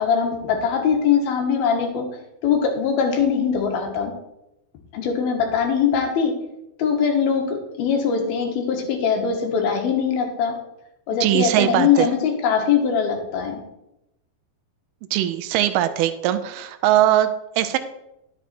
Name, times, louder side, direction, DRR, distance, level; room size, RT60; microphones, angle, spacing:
voice 1, 0.0-2.1 2.4-4.1 4.9-6.3 6.8-10.5 11.1-13.6, left 6 dB, 80° left, 3 dB, 3.3 m, -21 dB
voice 2, 11.2-12.1 15.1-17.8, right 12 dB, 90° right, 10 dB, 2.6 m, -20 dB
11.0 x 7.2 x 4.3 m, 0.87 s
omnidirectional pair, 4.3 m